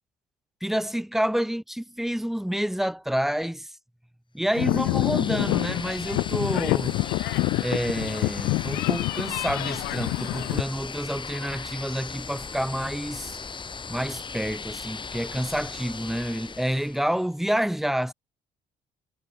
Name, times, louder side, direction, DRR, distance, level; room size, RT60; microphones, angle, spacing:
voice 1, 0.6-3.8 4.3-7.0 7.6-13.4 13.9-18.1, equal, ahead, 0.9 m, -28 dB
sound 1, 4.5-10.6, left 23 dB, 90° left, 0.5 m, -27 dB
sound 2, 4.5-17.3, left 5 dB, 30° left, 6.0 m, -38 dB
cardioid pair, 110°, 17 cm